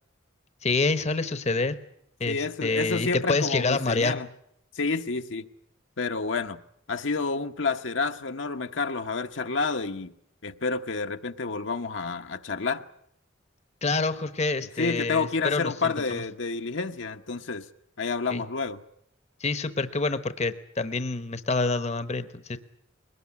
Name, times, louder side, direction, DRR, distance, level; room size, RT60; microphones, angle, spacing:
voice 1, 0.6-1.7 2.2-4.2 13.8-16.2 18.3-18.4 19.4-22.6, left 3 dB, 35° left, 12 dB, 1.0 m, -27 dB
voice 2, 2.3-4.3 4.7-5.5 6.0-6.6 6.9-10.1 10.4-12.8 14.8-17.6 18.0-18.8, left 4 dB, 70° left, 6 dB, 1.0 m, -29 dB
22.0 x 19.5 x 9.6 m, 0.75 s
head